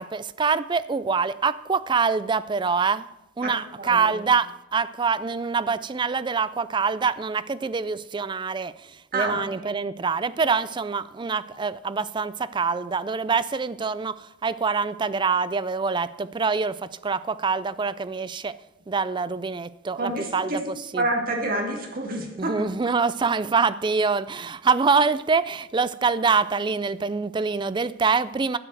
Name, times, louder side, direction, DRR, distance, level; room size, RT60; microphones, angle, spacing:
voice 1, 0.0-3.1 3.4-18.6 18.9-20.6 20.9-21.0 22.4-28.6, right 5 dB, 25° right, 16 dB, 0.4 m, -25 dB
voice 2, 3.4-4.1 9.1-9.7 20.0-20.6 20.9-22.7, right 2 dB, 50° right, 1 dB, 2.3 m, -28 dB
9.9 x 6.8 x 7.6 m, 0.90 s
head